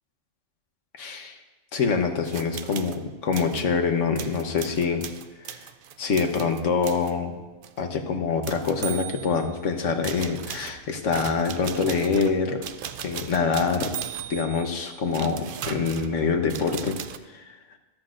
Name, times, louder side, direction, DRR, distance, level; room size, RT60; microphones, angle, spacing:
voice 1, 1.0-1.4 1.7-5.0 5.4-5.6 6.0-7.4 7.8-12.7 13.0-14.0 14.3-17.0 17.3-17.4, left 5 dB, 80° left, 5 dB, 1.4 m, -25 dB
sound 1, 2.3-3.0 3.3-3.7 4.2-7.1 7.6-7.8 8.4-9.6 10.0-17.2, right 9 dB, 60° right, 0.6 m, -38 dB
14.0 x 13.5 x 2.5 m, 1.1 s
omnidirectional pair, 1.3 m